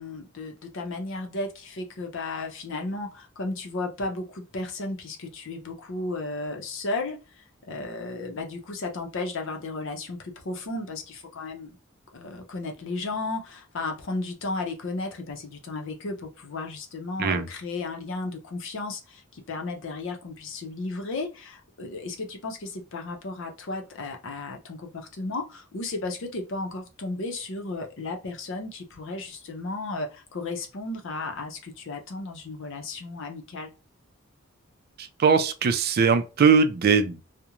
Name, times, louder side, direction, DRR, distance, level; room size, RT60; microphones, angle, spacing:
voice 1, 0.0-11.8 12.1-33.7, left 2 dB, 65° left, 0.6 m, -34 dB
voice 2, 35.0-37.2, right 5 dB, 50° right, 0.4 m, -21 dB
2.4 x 2.1 x 2.9 m
head